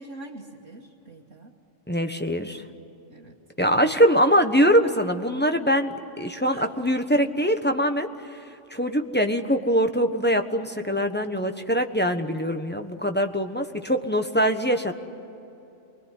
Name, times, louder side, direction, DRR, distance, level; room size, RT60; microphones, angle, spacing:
voice 1, 0.0-1.5 3.1-3.4 3.7-4.6 4.8-5.0 6.5-6.7, right 2 dB, 85° right, -1 dB, 1.9 m, -42 dB
voice 2, 1.9-2.6 3.6-8.1 8.7-15.0, equal, 10° left, 6 dB, 1.1 m, -23 dB
28.0 x 21.5 x 9.9 m, 2.9 s
omnidirectional pair, 1.2 m